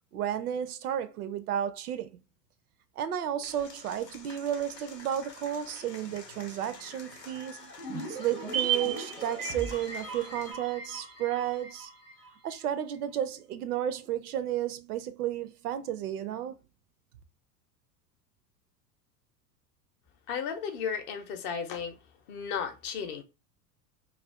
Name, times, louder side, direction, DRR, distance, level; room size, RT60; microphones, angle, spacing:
voice 1, 0.1-2.2 3.0-7.7 8.1-11.9 12.4-16.6, right 10 dB, 65° right, 0.5 m, -32 dB
Applause / Crowd, 3.4-10.5, left 4 dB, 85° left, 0.7 m, -49 dB
sound 1, 7.8-12.3 12.5-12.6, right 6 dB, 10° right, 0.4 m, -35 dB
voice 2, 20.3-22.0 22.3-23.2, left 6 dB, 40° left, 0.6 m, -34 dB
2.4 x 2.3 x 3.3 m
figure-of-eight pair, 75°, 48 cm